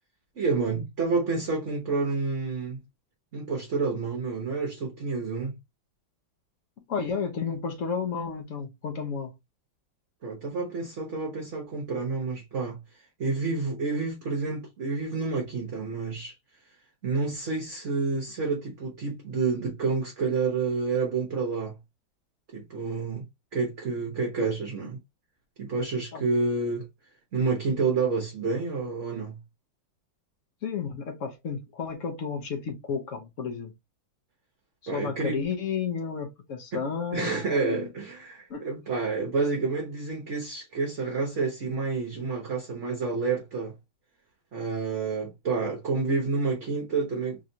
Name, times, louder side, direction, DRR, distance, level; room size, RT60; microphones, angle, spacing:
voice 1, 0.4-2.8 3.3-5.6 10.2-12.8 13.2-16.3 17.0-21.8 22.5-23.2 23.5-25.0 25.6-26.9 27.3-29.4 34.9-35.4 36.7-36.8 37.1-43.7 44.5-47.4, right 4 dB, 45° right, 1.1 m, -29 dB
voice 2, 6.9-9.3 26.1-26.2 30.6-33.7 34.9-37.9 38.5-38.7, left 6 dB, 50° left, 1.0 m, -32 dB
3.7 x 3.1 x 2.7 m
omnidirectional pair, 2.1 m